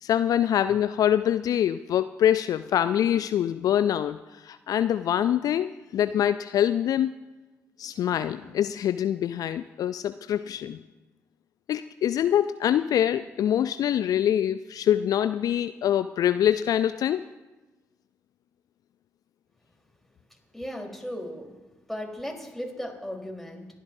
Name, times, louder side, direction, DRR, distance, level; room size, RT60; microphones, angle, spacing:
voice 1, 0.0-7.1 7.8-10.8 11.7-17.2, left 10 dB, 60° left, 13 dB, 0.3 m, -24 dB
voice 2, 20.3-21.6 21.9-23.7, equal, 5° left, 0 dB, 3.9 m, -36 dB
27.5 x 11.0 x 2.7 m, 1.1 s
hypercardioid pair, 40°, 7 cm